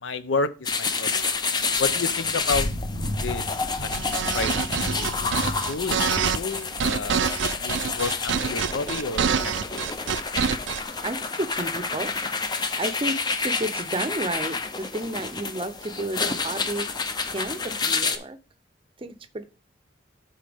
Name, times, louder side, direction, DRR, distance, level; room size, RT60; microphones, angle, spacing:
voice 1, 0.0-1.2 1.8-2.7 3.2-3.5 3.8-5.3 5.7-6.0 6.3-7.2 7.6-9.8, left 4 dB, 80° left, 13 dB, 0.7 m, -31 dB
sound 1, 0.7-18.2, left 4 dB, 20° left, 0.5 m, -29 dB
Thunder / Rain, 1.6-11.1, equal, 60° left, 1.9 m, -36 dB
sound 2, 3.9-10.8, right 7 dB, 75° right, 0.4 m, -26 dB
voice 2, 11.0-13.2 13.4-16.9 17.2-18.4 19.0-19.4, right 1 dB, 30° right, 12 dB, 0.6 m, -32 dB
12.5 x 4.3 x 3.5 m, 0.34 s
head